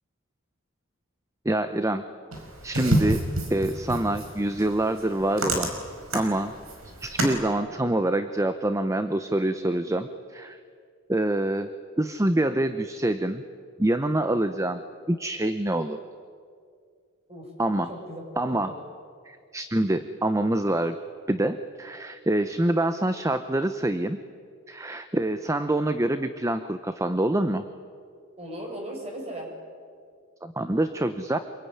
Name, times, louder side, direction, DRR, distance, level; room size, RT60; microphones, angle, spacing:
voice 1, 1.4-2.0 2.6-3.2 3.5-5.7 6.1-6.5 7.0-10.6 11.1-11.7 12.0-13.4 13.8-14.8 15.1-16.0 17.6-17.9 18.4-18.7 19.3-20.9 21.3-24.2 24.7-27.6 30.4-31.4, right 1 dB, 15° right, 10 dB, 0.8 m, -26 dB
sound 1, 2.3-7.4, right 1 dB, 85° right, 5.2 m, -29 dB
voice 2, 17.9-18.2 18.5-18.8 28.4-29.6, right 1 dB, 30° right, 1 dB, 6.9 m, -37 dB
26.5 x 23.0 x 9.8 m, 2.2 s
head